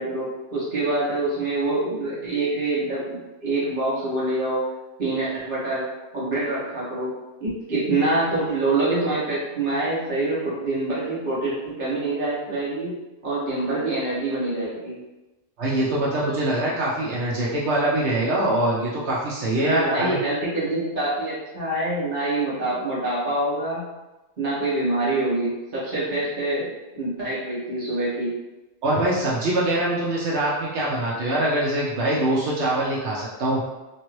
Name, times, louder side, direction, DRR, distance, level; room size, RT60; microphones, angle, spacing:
voice 1, 0.0-4.6 5.0-5.9 6.1-7.1 7.4-12.9 13.2-15.0 19.6-23.8 24.4-26.7 26.9-28.3, right 2 dB, 55° right, -8 dB, 1.4 m, -25 dB
voice 2, 15.6-20.2 28.8-33.6, right 1 dB, 85° right, -6 dB, 1.0 m, -23 dB
3.1 x 2.5 x 3.0 m, 1.0 s
omnidirectional pair, 1.1 m